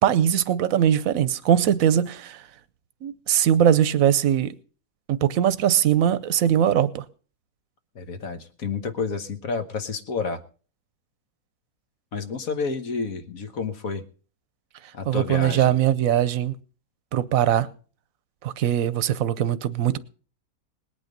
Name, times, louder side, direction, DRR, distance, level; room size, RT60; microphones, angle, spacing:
voice 1, 0.0-2.4 3.0-4.5 5.1-7.0 15.1-16.6 17.1-17.7 18.4-20.0, right 10 dB, 65° right, 1.2 m, -21 dB
voice 2, 7.9-10.4 12.1-14.0 14.9-15.7, left 4 dB, 60° left, 1.6 m, -30 dB
19.5 x 8.8 x 5.3 m
omnidirectional pair, 1.7 m